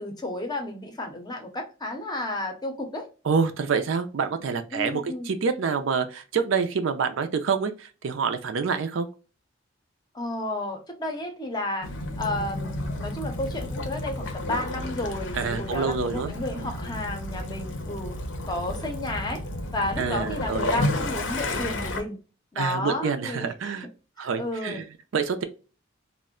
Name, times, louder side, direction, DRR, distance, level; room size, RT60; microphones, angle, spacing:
voice 1, 0.0-3.1 4.7-5.3 10.1-11.9 12.2-18.2 18.5-19.4 19.7-22.2 22.5-23.5 24.2-24.8, left 1 dB, 20° left, 0.6 m, -32 dB
voice 2, 3.2-9.1 15.3-16.3 16.6-16.7 20.0-20.7 22.6-23.9 24.2-24.9 25.1-25.4, right 5 dB, 75° right, 0.4 m, -27 dB
Waves surf / Splash splatter / Trickle dribble, 11.8-22.0, left 1 dB, 70° left, 0.6 m, -31 dB
2.5 x 2.1 x 3.6 m
head